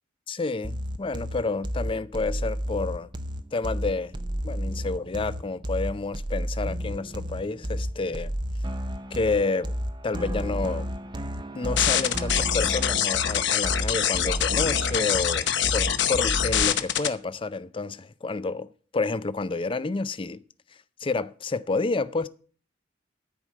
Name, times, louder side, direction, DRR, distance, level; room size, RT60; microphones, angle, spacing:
voice 1, 0.3-3.1 3.5-4.1 4.4-8.3 9.1-9.7 10.0-10.9 11.5-20.4 21.0-22.3, left 3 dB, 25° left, 0.4 m, -29 dB
sound 1, 0.6-16.6, equal, 25° right, 0.6 m, -32 dB
sound 2, 11.8-17.1, left 10 dB, 60° left, 0.8 m, -24 dB
13.5 x 4.9 x 7.5 m
head